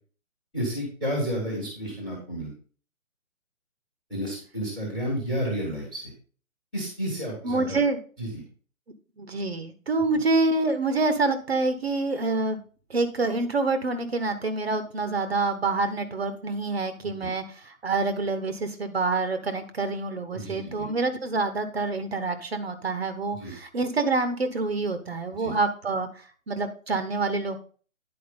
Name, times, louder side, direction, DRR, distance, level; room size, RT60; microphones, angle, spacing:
voice 1, 0.5-2.5 4.1-6.1 6.7-7.8 8.2-8.4 17.0-17.1 20.3-20.9 23.3-23.5 25.3-25.5, equal, ahead, -2 dB, 1.1 m, -31 dB
voice 2, 7.4-8.0 9.2-12.6 12.9-26.1 26.5-27.6, right 3 dB, 45° right, 10 dB, 1.0 m, -27 dB
9.8 x 4.7 x 5.1 m, 0.39 s
hypercardioid pair, 170°, 41 cm